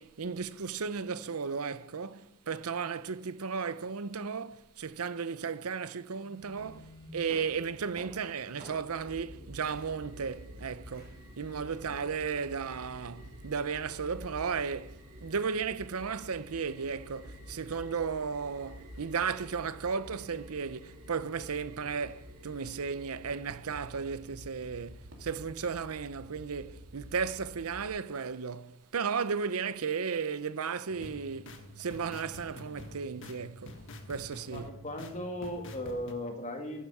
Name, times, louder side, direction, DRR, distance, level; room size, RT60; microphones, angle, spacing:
voice 1, 0.0-33.8 34.1-34.7, right 5 dB, 85° right, 0.7 m, -35 dB
sound 1, 6.2-12.1, right 1 dB, 50° right, 4.8 m, -52 dB
sound 2, 8.9-27.9, equal, 65° right, 2.8 m, -49 dB
sound 3, 30.9-36.1, left 1 dB, 60° left, 1.6 m, -47 dB
voice 2, 34.5-36.8, left 1 dB, 35° left, 2.1 m, -37 dB
14.5 x 11.5 x 4.9 m
head